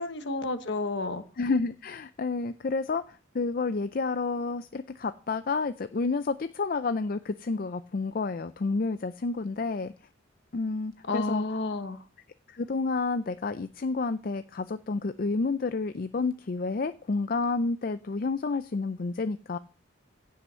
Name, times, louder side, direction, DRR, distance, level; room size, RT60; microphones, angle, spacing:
voice 1, 0.0-1.2 11.1-12.0, left 2 dB, 60° left, 9 dB, 1.2 m, -30 dB
voice 2, 1.4-9.9 10.5-11.4 12.5-19.6, left 3 dB, 45° left, 11 dB, 0.4 m, -30 dB
16.0 x 5.6 x 5.6 m, 0.38 s
head